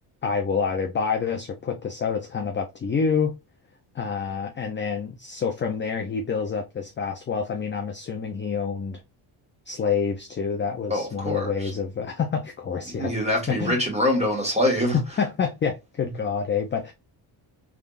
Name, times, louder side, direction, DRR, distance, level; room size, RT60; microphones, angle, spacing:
voice 1, 0.2-3.3 3.9-9.0 9.7-13.1 13.5-13.8 15.2-16.9, left 6 dB, 25° left, 0.4 m, -27 dB
voice 2, 10.9-11.7 12.9-15.0, left 1 dB, 15° right, 1.7 m, -24 dB
3.6 x 3.4 x 2.4 m
cardioid pair, 170°, 49 cm